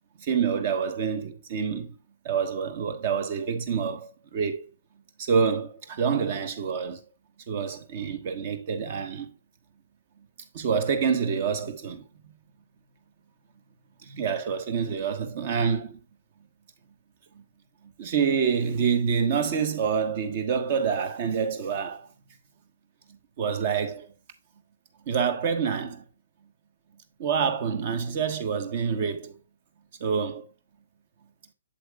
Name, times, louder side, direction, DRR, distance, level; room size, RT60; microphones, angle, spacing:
voice 1, 0.2-1.9 2.2-4.7 5.2-7.0 7.5-9.3 10.5-12.1 14.0-16.0 17.3-17.4 17.8-22.1 23.4-24.1 25.1-26.0 27.2-29.4 30.0-30.5, right 6 dB, 40° right, 1.2 m, -27 dB
7.8 x 7.7 x 2.3 m
figure-of-eight pair, 130°, 0 cm